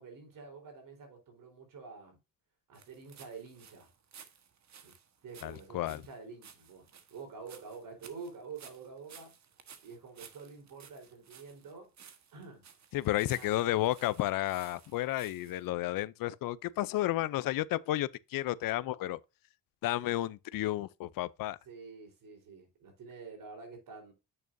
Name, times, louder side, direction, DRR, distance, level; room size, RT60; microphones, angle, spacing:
voice 1, 0.0-2.2 2.7-3.9 4.8-5.0 5.2-9.4 9.8-11.9 12.3-12.7 13.3-13.9 21.6-24.1, right 5 dB, 80° right, 4.0 m, -48 dB
sound 1, 2.7-15.7, right 7 dB, 55° right, 1.3 m, -56 dB
voice 2, 5.4-6.0 12.9-19.2 19.8-21.6, left 15 dB, 90° left, 0.6 m, -32 dB
8.7 x 6.6 x 2.6 m
cardioid pair, 100°, 33 cm